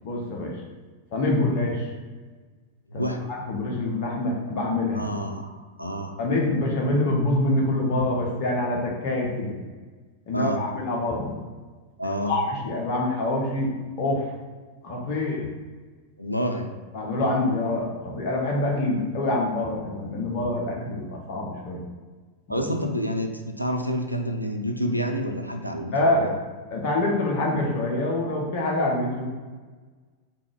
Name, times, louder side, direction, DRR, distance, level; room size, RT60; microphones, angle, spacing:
voice 1, 0.0-0.6 1.1-1.9 2.9-5.1 6.2-9.5 10.3-11.4 12.3-13.7 14.0-14.3 14.8-15.5 16.9-21.8 22.5-22.6 25.9-26.3 26.7-29.2, left 2 dB, 45° left, -1 dB, 0.8 m, -25 dB
voice 2, 2.9-3.2 4.9-6.2 10.3-10.6 12.0-12.4 16.2-16.7 22.5-26.3, equal, 90° left, 4 dB, 0.3 m, -28 dB
3.5 x 2.4 x 3.3 m, 1.4 s
figure-of-eight pair, 90°, 0 cm